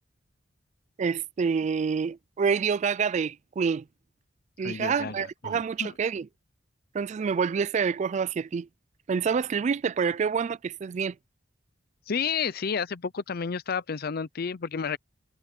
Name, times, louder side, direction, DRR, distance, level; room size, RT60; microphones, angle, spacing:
voice 1, 1.0-3.8 4.6-6.3 6.9-8.7 9.1-11.2, right 6 dB, 40° right, 0.3 m, -27 dB
voice 2, 4.6-5.9 12.1-15.0, left 6 dB, 55° left, 0.6 m, -31 dB
head